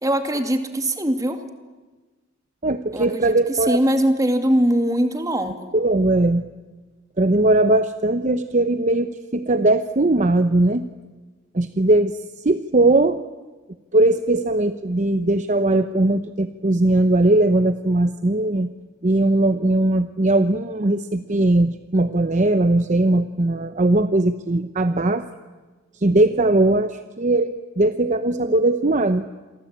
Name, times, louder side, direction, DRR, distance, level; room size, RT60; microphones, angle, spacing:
voice 1, 0.0-1.4 2.9-5.7, right 1 dB, 15° right, 6 dB, 2.3 m, -21 dB
voice 2, 2.6-3.8 5.7-6.4 7.2-10.8 11.5-12.2 12.4-13.2 13.9-18.7 19.0-25.2 26.0-29.3, right 2 dB, 35° right, 10 dB, 0.8 m, -19 dB
28.0 x 23.0 x 8.8 m, 1.3 s
head